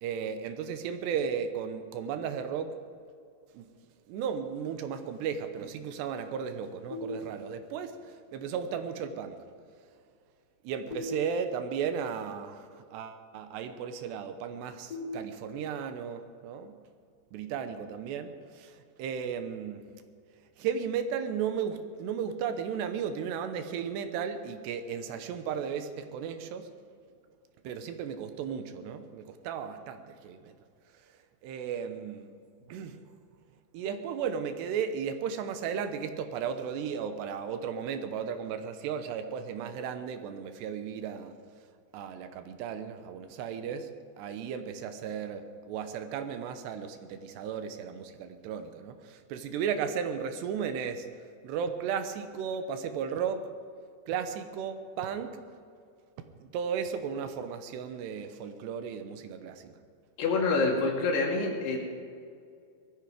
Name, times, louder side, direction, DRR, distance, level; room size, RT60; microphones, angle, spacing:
voice 1, 0.0-2.8 3.5-3.7 4.1-9.4 10.6-16.7 17.3-19.8 20.6-26.7 27.6-30.5 31.4-32.3 32.7-33.0 33.7-41.3 41.9-51.1 51.4-53.5 54.1-55.4 56.4-59.7, right 7 dB, 80° right, 8 dB, 3.1 m, -35 dB
sound 1, 6.9-7.9 10.9-11.9 14.9-15.9, left 2 dB, 40° left, 4.2 m, -41 dB
voice 2, 60.2-61.8, left 3 dB, 70° left, 0 dB, 4.3 m, -26 dB
20.0 x 14.0 x 5.0 m, 2.3 s
omnidirectional pair, 4.9 m